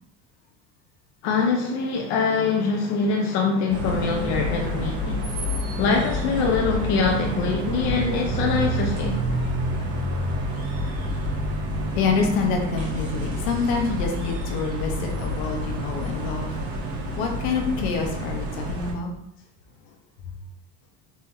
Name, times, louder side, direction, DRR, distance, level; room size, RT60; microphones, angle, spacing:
voice 1, 1.2-5.2 5.8-9.2, left 4 dB, 65° left, 1 dB, 0.6 m, -23 dB
sound 1, 3.7-18.9, equal, 50° right, 1.1 m, -28 dB
voice 2, 12.0-16.5 17.2-19.1, left 4 dB, 85° left, 3 dB, 1.0 m, -26 dB
4.2 x 2.8 x 3.8 m, 0.79 s
cardioid pair, 140°, 30 cm